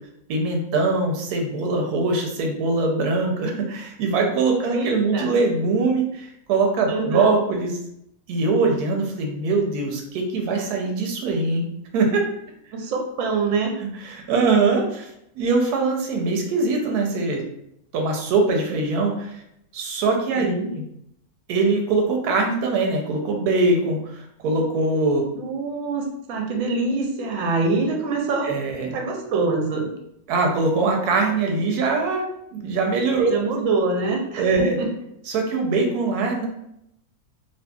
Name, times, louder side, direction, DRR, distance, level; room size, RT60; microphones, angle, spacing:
voice 1, 0.3-7.7 8.3-11.7 11.9-12.3 14.0-15.1 15.4-17.4 17.9-19.4 19.7-20.5 21.5-25.2 28.4-28.9 30.3-32.3 32.5-33.3 34.4-34.8 35.3-36.5, right 3 dB, 90° right, 2 dB, 1.1 m, -22 dB
voice 2, 4.7-5.4 6.9-7.3 12.7-13.7 20.4-20.7 25.3-28.5 28.9-29.9 33.3-34.9, right 3 dB, 70° right, 1 dB, 0.9 m, -25 dB
2.7 x 2.6 x 2.2 m, 0.77 s
omnidirectional pair, 1.6 m